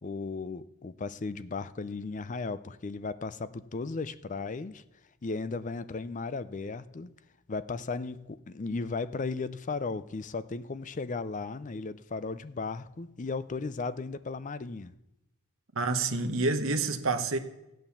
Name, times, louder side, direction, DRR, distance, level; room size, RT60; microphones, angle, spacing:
voice 1, 0.0-4.8 5.2-7.1 7.5-14.9, left 4 dB, 35° left, 15 dB, 0.4 m, -35 dB
voice 2, 15.7-17.4, right 3 dB, 60° right, 6 dB, 1.1 m, -28 dB
14.0 x 9.1 x 7.1 m, 0.95 s
head